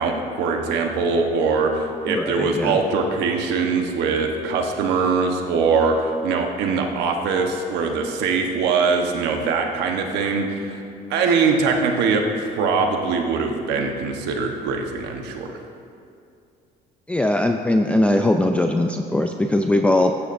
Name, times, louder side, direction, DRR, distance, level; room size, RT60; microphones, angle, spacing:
voice 1, 0.0-10.8 11.1-15.5, right 4 dB, 90° right, 3 dB, 1.2 m, -22 dB
voice 2, 2.1-2.8 17.1-20.1, left 1 dB, 5° left, 4 dB, 0.4 m, -20 dB
15.0 x 9.7 x 2.6 m, 2.4 s
cardioid pair, 110°, 17 cm